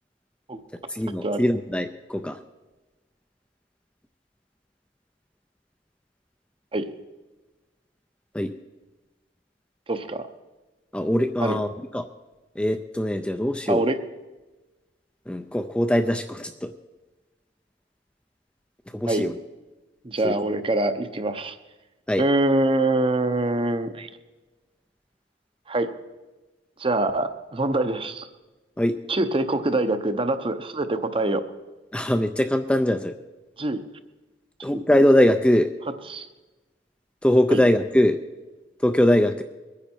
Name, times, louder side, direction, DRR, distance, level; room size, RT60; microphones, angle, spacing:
voice 1, 0.9-2.4 8.3-8.5 10.9-11.7 11.9-12.1 12.6-13.8 15.3-16.7 18.9-19.3 20.2-20.4 22.1-22.2 28.8-29.0 31.9-33.1 34.6-35.7 37.2-38.2 38.8-39.4, left 1 dB, 5° left, 7 dB, 0.4 m, -21 dB
voice 2, 9.9-10.3 11.4-11.6 13.7-14.0 19.1-19.2 20.0-21.6 22.2-24.1 25.7-25.9 26.8-28.3 29.1-31.4 33.6-33.8 34.7-34.8 36.1-36.3 37.5-37.6, right 2 dB, 30° right, 10 dB, 0.7 m, -24 dB
22.0 x 9.9 x 4.4 m, 1.2 s
head